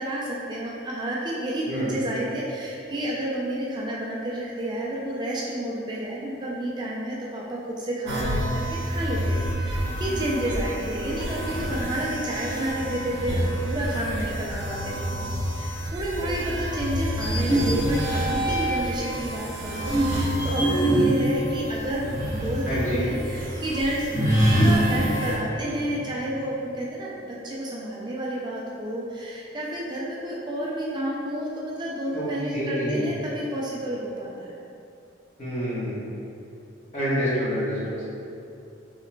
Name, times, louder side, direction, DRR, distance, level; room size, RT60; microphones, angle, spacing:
voice 1, 0.0-34.6, right 1 dB, 25° right, -5 dB, 0.4 m, -30 dB
voice 2, 1.6-2.0 22.6-23.0 32.1-32.3 32.5-33.1 35.4-36.0 36.9-38.0, equal, 40° left, -9 dB, 1.2 m, -27 dB
sound 1, 8.1-25.4, equal, 75° right, 0.7 m, -30 dB
sound 2, 17.1-19.0 19.6-22.6 22.9-23.0 24.1-26.2, right 1 dB, 25° left, 1.2 m, -24 dB
4.8 x 3.0 x 2.2 m, 2.7 s
head